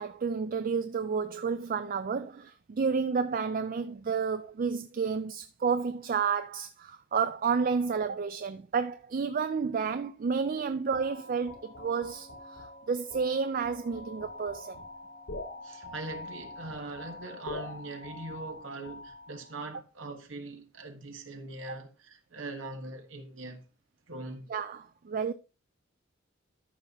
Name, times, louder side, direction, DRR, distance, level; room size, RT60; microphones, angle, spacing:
voice 1, 0.0-14.8 21.7-21.8 24.5-25.3, right 5 dB, 45° right, 0.4 m, -31 dB
sound 1, 10.9-19.6, left 2 dB, 90° left, 3.5 m, -44 dB
voice 2, 15.6-23.6 24.1-24.5, right 2 dB, 80° right, 1.5 m, -41 dB
13.5 x 5.6 x 3.0 m
head